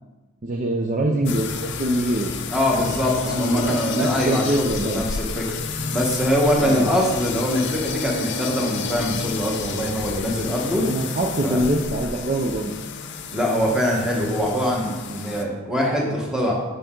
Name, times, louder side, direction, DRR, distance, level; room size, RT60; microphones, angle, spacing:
voice 1, 0.4-2.3 3.2-5.0 6.6-6.9 10.8-12.7, right 1 dB, 35° right, 1 dB, 0.5 m, -24 dB
sound 1, 1.3-15.4, left 5 dB, 55° left, 0.5 m, -31 dB
voice 2, 2.5-5.5 5.9-10.8 11.4-11.6 13.3-16.5, equal, 5° right, -2 dB, 1.2 m, -23 dB
6.8 x 6.5 x 3.7 m, 1.2 s
head